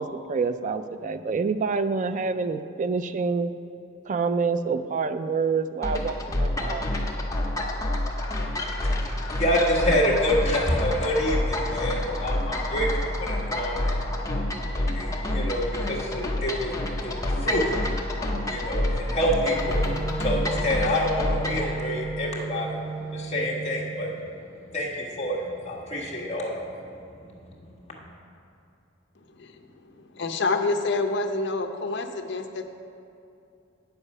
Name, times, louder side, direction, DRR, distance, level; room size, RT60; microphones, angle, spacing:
voice 1, 0.0-3.5 4.1-6.9, right 4 dB, 40° right, 11 dB, 0.3 m, -27 dB
sound 1, 5.8-21.7, left 1 dB, 15° left, 0.8 m, -28 dB
voice 2, 8.9-12.9 13.2-14.1 14.4-22.8 23.1-24.1 24.7-27.0 27.9-28.0, equal, 35° left, -3 dB, 1.5 m, -27 dB
Wind instrument woodwind instrument, 19.5-24.2, right 3 dB, 55° right, 1.0 m, -35 dB
voice 3, 30.1-32.7, left 3 dB, 60° left, 6 dB, 0.7 m, -27 dB
9.1 x 6.9 x 5.4 m, 2.6 s
head